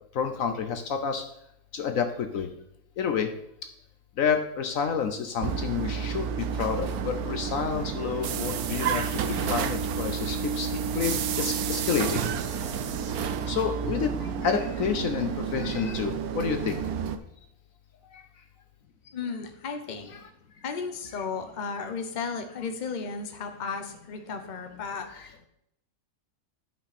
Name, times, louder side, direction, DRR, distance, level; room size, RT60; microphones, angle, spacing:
voice 1, 0.1-1.2 1.7-2.5 3.0-3.3 4.2-10.7 10.9-12.3 13.4-16.8 18.1-18.2, left 6 dB, 65° left, 6 dB, 1.1 m, -29 dB
sound 1, 5.4-17.2, right 7 dB, 75° right, 1.2 m, -30 dB
voice 2, 19.1-20.2 20.6-25.5, left 5 dB, 35° left, 6 dB, 1.0 m, -35 dB
11.5 x 5.4 x 4.3 m, 0.75 s
omnidirectional pair, 1.6 m